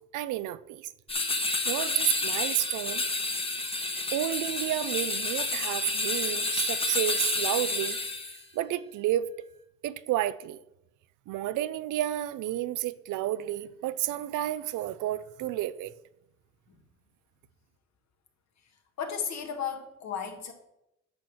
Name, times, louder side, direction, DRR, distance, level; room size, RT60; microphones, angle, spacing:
voice 1, 0.1-0.9 1.7-3.0 4.1-8.0 8.5-9.3 9.8-10.6 11.3-15.9, right 13 dB, 85° right, 0.5 m, -31 dB
sound 1, 1.1-8.4, left 2 dB, 20° left, 1.1 m, -30 dB
voice 2, 19.0-20.5, left 7 dB, 60° left, 1.6 m, -34 dB
9.5 x 4.5 x 6.3 m
cardioid pair, 90°, 30 cm